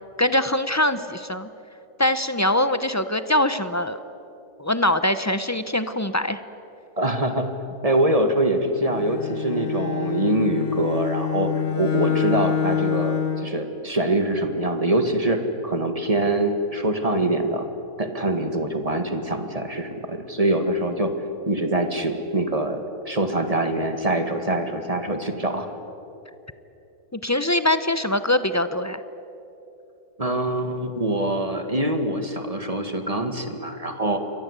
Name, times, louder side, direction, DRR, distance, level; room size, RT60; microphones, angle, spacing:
voice 1, 0.2-1.5 2.0-4.0 4.6-6.4 27.1-29.0, left 1 dB, 20° left, 12 dB, 0.5 m, -23 dB
voice 2, 7.0-7.5 7.8-11.5 11.8-17.7 18.0-21.1 21.5-22.8 23.1-25.7 30.2-34.2, right 1 dB, 20° right, 6 dB, 2.0 m, -24 dB
Bowed string instrument, 8.8-13.6, left 8 dB, 40° left, 1.2 m, -26 dB
28.5 x 23.0 x 8.3 m, 2.9 s
omnidirectional pair, 1.7 m